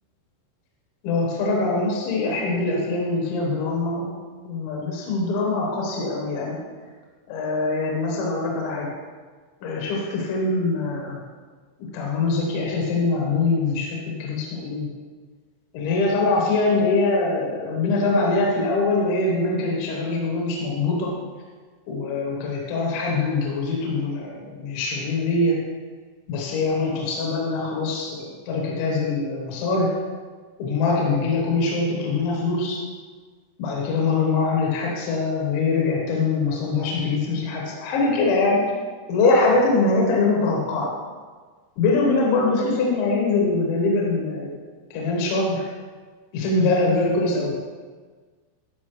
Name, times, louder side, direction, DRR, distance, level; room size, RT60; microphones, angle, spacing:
voice 1, 1.0-4.1 4.4-6.6 7.3-8.9 9.6-11.2 11.9-14.9 15.7-21.1 21.9-25.5 26.3-29.9 30.6-32.8 33.6-38.6 39.1-40.9 41.8-44.5 44.9-45.6 46.3-47.5, left 3 dB, 75° left, -2 dB, 3.3 m, -23 dB
12.5 x 5.4 x 3.2 m, 1.5 s
omnidirectional pair, 5.7 m